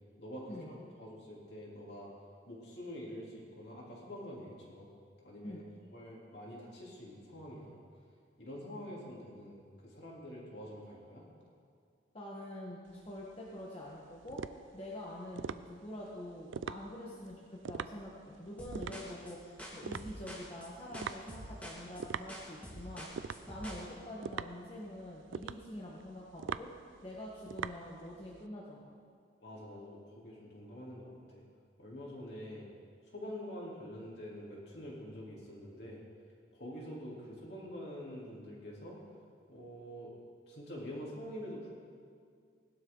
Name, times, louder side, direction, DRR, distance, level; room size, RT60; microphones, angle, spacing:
voice 1, 0.2-2.1 2.5-4.9 5.2-7.8 8.4-11.3 29.4-31.4 31.8-32.7 33.0-36.0 36.5-39.0 39.5-40.1 40.5-41.7, equal, 55° left, -5 dB, 3.5 m, -46 dB
voice 2, 12.1-23.1 23.5-26.7 27.0-29.0, left 1 dB, 30° left, -5 dB, 1.5 m, -46 dB
sound 1, 12.9-28.4, right 6 dB, 80° right, 0.4 m, -44 dB
sound 2, 18.6-23.9, equal, 10° left, 2.0 m, -47 dB
19.5 x 12.0 x 4.0 m, 2.2 s
head